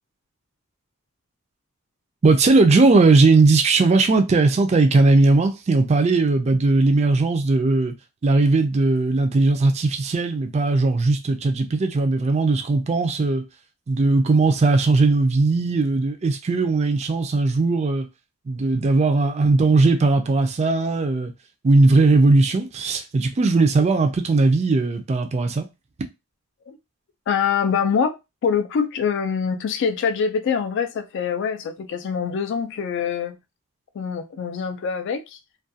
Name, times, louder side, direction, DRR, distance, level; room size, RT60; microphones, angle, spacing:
voice 1, 2.2-7.9 8.2-13.4 13.9-18.1 18.5-21.3 21.6-25.7, right 3 dB, 30° right, 0.3 m, -18 dB
voice 2, 27.3-33.4 33.9-35.4, left 6 dB, 55° left, 0.3 m, -24 dB
2.4 x 2.2 x 2.6 m
head